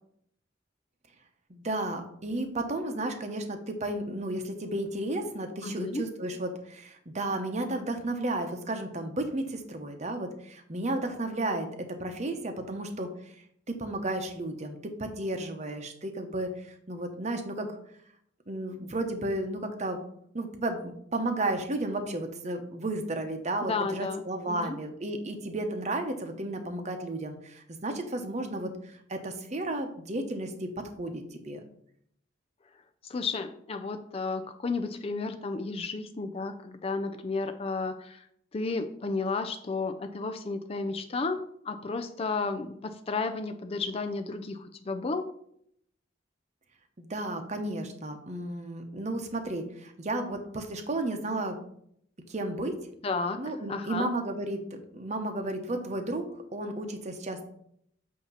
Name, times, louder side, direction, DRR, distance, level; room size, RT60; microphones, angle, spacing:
voice 1, 1.5-11.7 12.0-13.3 13.7-17.8 18.5-20.0 20.3-30.7 31.0-31.6 47.0-51.6 52.3-52.8 53.4-56.2 56.5-57.4, right 2 dB, 40° right, 6 dB, 0.9 m, -33 dB
voice 2, 5.6-6.1 23.6-24.8 33.0-38.2 38.5-45.3 53.0-54.1, left 3 dB, 35° left, 8 dB, 0.4 m, -33 dB
8.3 x 2.9 x 5.5 m, 0.70 s
head